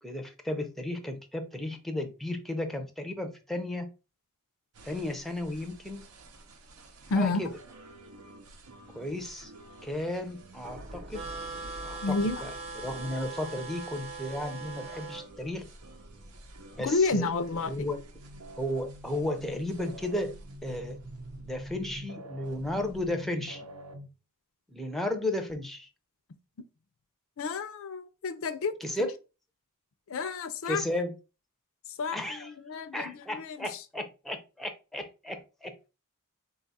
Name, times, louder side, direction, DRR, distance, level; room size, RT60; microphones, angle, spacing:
voice 1, 0.0-3.9 4.8-6.0 7.2-7.5 8.9-9.5 9.8-11.2 11.8-12.5 12.8-15.7 16.7-17.3 17.7-18.0 18.6-20.3 20.6-21.0 21.4-23.7 24.7-25.9 28.8-29.1 30.7-31.1 32.1-32.5 32.9-35.9, left 1 dB, ahead, 0.5 m, -34 dB
sound 1, 4.7-24.1, right 1 dB, 85° right, 0.7 m, -48 dB
voice 2, 7.1-7.4 12.0-12.4 16.8-17.7 27.4-28.7 29.0-29.1 30.1-30.8 32.0-33.8, left 3 dB, 65° left, 0.5 m, -30 dB
sound 2, 10.6-16.9 17.3-17.6, equal, 50° right, 0.7 m, -50 dB
sound 3, 11.1-15.2, right 3 dB, 30° right, 0.9 m, -40 dB
3.9 x 2.3 x 4.0 m
head